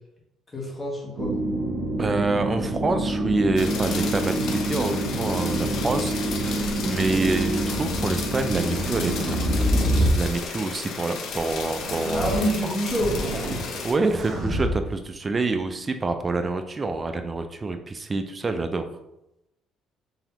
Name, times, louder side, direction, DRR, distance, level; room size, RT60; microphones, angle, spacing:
voice 1, 0.5-1.3 12.1-13.2 13.5-13.8, equal, 20° left, -3 dB, 1.5 m, -27 dB
sound 1, 1.2-10.0, right 1 dB, 75° right, 0.7 m, -27 dB
voice 2, 2.0-12.7 13.8-18.8, right 3 dB, 25° right, 7 dB, 0.4 m, -27 dB
sound 2, 3.6-13.9, left 5 dB, 65° left, 0.6 m, -34 dB
sound 3, 6.7-7.4 8.3-10.2 11.7-12.4 12.9-13.6 14.0-14.7, equal, 45° right, 1.0 m, -26 dB
3.9 x 3.6 x 2.9 m, 0.87 s
cardioid pair, 105°, 0 cm